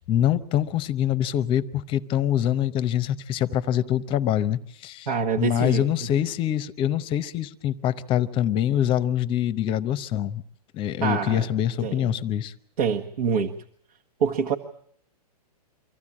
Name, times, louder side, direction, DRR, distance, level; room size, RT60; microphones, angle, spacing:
voice 1, 0.1-5.1 5.4-10.4 10.7-12.5, left 11 dB, 25° left, 16 dB, 0.8 m, -24 dB
voice 2, 5.1-5.8 11.0-11.4 11.8-12.0 12.8-13.5 14.2-14.6, right 6 dB, 65° right, 1 dB, 1.6 m, -25 dB
24.5 x 14.5 x 8.7 m, 0.66 s
hypercardioid pair, 135°, 20 cm